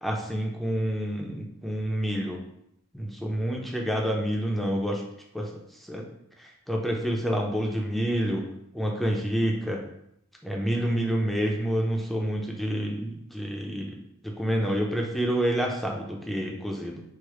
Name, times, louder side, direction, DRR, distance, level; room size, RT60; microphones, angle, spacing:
voice 1, 0.0-2.4 2.9-5.0 5.3-5.5 5.8-6.1 6.4-8.4 8.7-9.8 10.4-13.9 14.2-17.0, equal, ahead, 0 dB, 0.5 m, -28 dB
4.7 x 2.0 x 3.0 m, 0.77 s
head